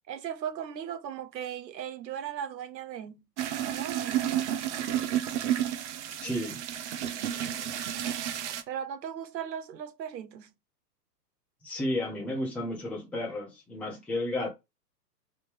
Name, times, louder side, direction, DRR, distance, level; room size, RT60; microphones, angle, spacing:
voice 1, 0.1-3.3 3.7-4.2 8.7-10.5, right 9 dB, 85° right, 0.8 m, -37 dB
sound 1, 3.4-8.6, right 11 dB, 45° right, 0.6 m, -31 dB
voice 2, 6.2-6.6 11.6-14.5, left 1 dB, 5° left, 0.6 m, -32 dB
3.4 x 2.8 x 3.0 m
hypercardioid pair, 130°, 49 cm